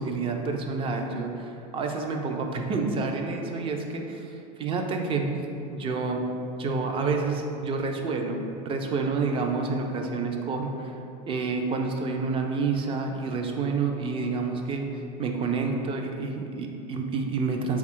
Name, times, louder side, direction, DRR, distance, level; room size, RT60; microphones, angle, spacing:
voice 1, 0.0-4.0 4.6-5.3 5.7-6.2 6.6-8.4 8.6-10.9 11.3-14.8 15.2-17.8, right 4 dB, 25° right, 3 dB, 0.4 m, -28 dB
4.0 x 2.3 x 4.4 m, 2.6 s
supercardioid pair, 120°, 21 cm